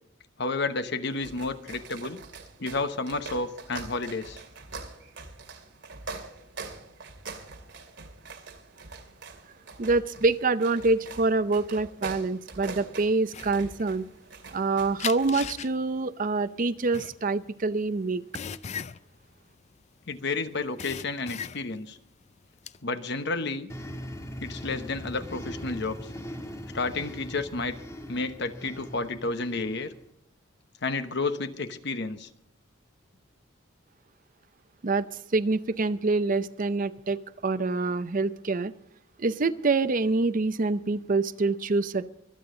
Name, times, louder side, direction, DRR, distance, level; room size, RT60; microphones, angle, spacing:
voice 1, 0.4-2.2 2.6-4.4 20.1-22.0 22.8-23.7 24.4-26.0 26.7-27.8 28.1-29.9 30.8-32.3, left 3 dB, 55° left, 10 dB, 1.0 m, -31 dB
sound 1, 1.1-15.8, right 3 dB, 60° right, 2.6 m, -44 dB
voice 2, 9.8-14.1 14.5-18.2 34.8-38.7 39.2-42.1, right 3 dB, 40° right, 13 dB, 0.6 m, -26 dB
sound 2, 13.3-14.6 15.0-20.3 20.5-21.9 22.3-22.8, left 8 dB, 35° left, 0.4 m, -38 dB
sound 3, 23.7-30.1, equal, 15° left, 1.7 m, -40 dB
25.0 x 8.8 x 3.8 m, 0.78 s
head